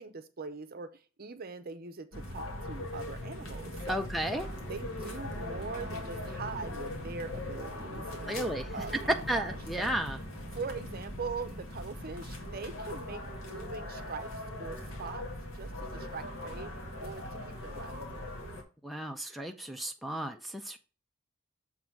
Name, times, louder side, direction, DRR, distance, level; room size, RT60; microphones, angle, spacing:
voice 1, 0.0-4.1 4.6-8.9 9.3-10.0 10.5-15.3 15.5-16.7 17.0-18.3, right 4 dB, 45° right, 0.8 m, -42 dB
sound 1, 2.1-18.6, left 1 dB, 70° left, 2.1 m, -40 dB
voice 2, 3.9-4.5 8.3-10.2 18.8-20.8, right 1 dB, ahead, 0.5 m, -33 dB
7.2 x 3.9 x 4.5 m
head